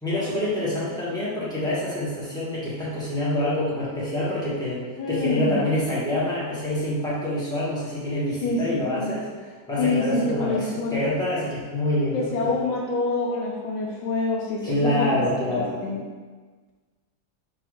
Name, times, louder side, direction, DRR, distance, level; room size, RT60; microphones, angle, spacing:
voice 1, 0.0-12.5 14.6-15.7, left 1 dB, 5° left, -10 dB, 0.7 m, -26 dB
voice 2, 5.0-5.6 8.4-9.1 9.8-11.0 12.1-15.1 15.5-16.0, left 3 dB, 75° left, -1 dB, 1.3 m, -26 dB
3.8 x 2.7 x 4.7 m, 1.4 s
omnidirectional pair, 2.3 m